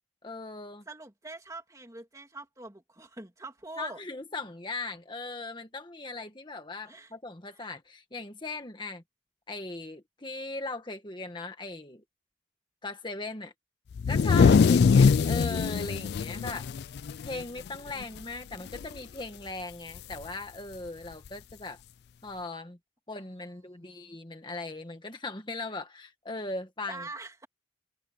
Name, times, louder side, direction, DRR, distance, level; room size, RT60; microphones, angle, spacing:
voice 1, 0.2-0.8 3.8-9.0 9.5-12.0 12.8-13.5 14.1-16.7 17.2-21.8 22.2-22.8 23.1-27.0, left 3 dB, 25° left, 1.4 m, -39 dB
voice 2, 0.9-4.0 6.8-7.1 7.5-7.7 14.3-14.6 23.1-23.3 23.7-24.2 26.9-27.5, right 2 dB, 20° right, 2.8 m, -44 dB
sound 1, 14.0-17.7 18.0-18.2 18.5-19.0 20.1-20.2 21.3-21.4, left 5 dB, 60° left, 0.3 m, -22 dB
head